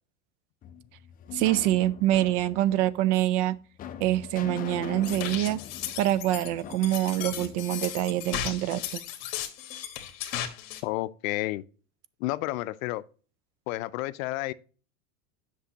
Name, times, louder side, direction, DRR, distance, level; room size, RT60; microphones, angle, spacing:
sound 1, 0.6-8.7, left 10 dB, 20° left, 0.4 m, -42 dB
voice 1, 1.3-3.6 4.0-5.6 6.0-9.0, right 14 dB, 55° right, 0.5 m, -25 dB
sound 2, 5.0-10.8, left 11 dB, 50° left, 1.3 m, -36 dB
voice 2, 10.8-11.6 12.2-13.0 13.7-14.5, left 18 dB, 70° left, 0.5 m, -30 dB
8.1 x 6.1 x 2.8 m
supercardioid pair, 140°, 42 cm